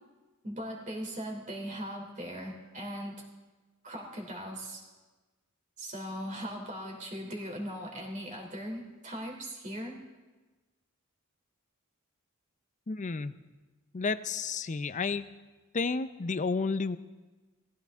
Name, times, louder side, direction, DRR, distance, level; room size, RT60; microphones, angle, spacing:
voice 1, 0.4-3.2 3.8-4.8 5.8-10.0, equal, 35° right, 0 dB, 3.1 m, -39 dB
voice 2, 12.9-13.4 13.9-15.3 15.7-17.0, left 4 dB, 35° left, 14 dB, 0.5 m, -31 dB
19.5 x 15.5 x 3.6 m, 1.2 s
head